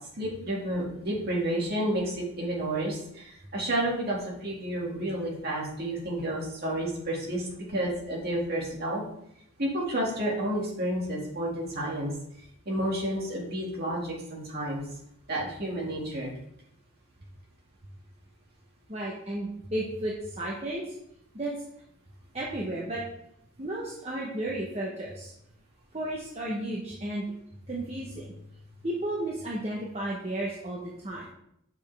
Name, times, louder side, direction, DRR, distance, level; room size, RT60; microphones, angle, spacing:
voice 1, 0.2-9.0 9.6-12.1 12.7-14.8 15.3-16.3, right 1 dB, 50° right, -4 dB, 2.2 m, -30 dB
voice 2, 18.9-20.9 21.3-21.5 22.3-23.0 23.6-25.3 25.9-27.2 27.7-28.3 28.8-31.3, right 1 dB, 30° right, -3 dB, 0.9 m, -33 dB
6.9 x 5.2 x 3.4 m, 0.75 s
head